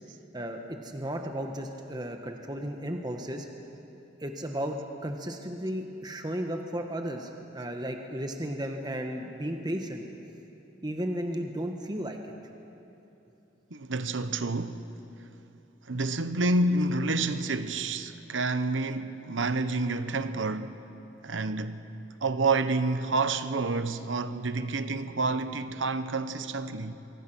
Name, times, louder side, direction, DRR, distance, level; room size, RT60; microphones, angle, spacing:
voice 1, 0.3-3.5 4.2-10.0 10.8-12.2, equal, 20° right, 1.3 m, -34 dB
voice 2, 13.7-14.9 15.9-20.9 21.2-21.9 22.2-26.9, right 3 dB, 85° right, 1.0 m, -29 dB
24.5 x 24.0 x 6.2 m
head